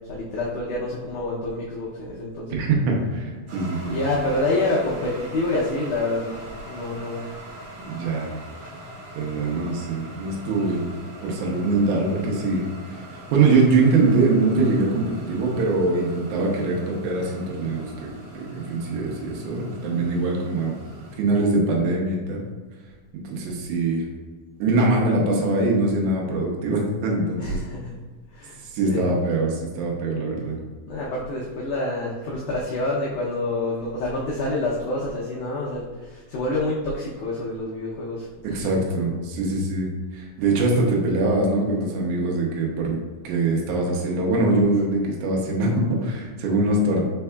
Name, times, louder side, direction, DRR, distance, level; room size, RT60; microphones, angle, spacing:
voice 1, 0.1-2.6 3.9-7.3 27.4-27.9 28.3-28.6 28.9-29.1 30.9-38.7, left 2 dB, 85° left, -5 dB, 1.7 m, -27 dB
voice 2, 2.5-4.0 7.8-8.3 9.2-10.9 11.2-20.7 21.2-22.4 23.2-24.1 24.6-27.6 28.6-30.6 38.4-43.0 43.2-47.0, right 2 dB, 80° right, -2 dB, 1.8 m, -23 dB
sound 1, 3.5-21.2, right 1 dB, 55° right, 2.0 m, -41 dB
4.6 x 4.4 x 2.2 m, 1.3 s
omnidirectional pair, 4.3 m